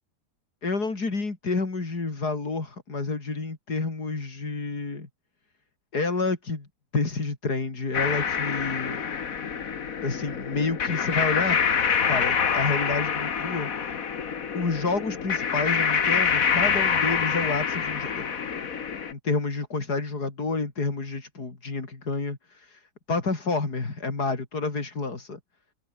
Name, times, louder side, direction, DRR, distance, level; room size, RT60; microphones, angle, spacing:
voice 1, 0.6-5.1 5.9-6.7 6.9-9.1 10.0-11.6 12.1-14.0 14.5-18.3 19.1-25.4, left 3 dB, 75° left, 4.3 m, -29 dB
sound 1, 7.9-19.1, left 6 dB, 60° left, 1.9 m, -26 dB
omnidirectional pair, 1.7 m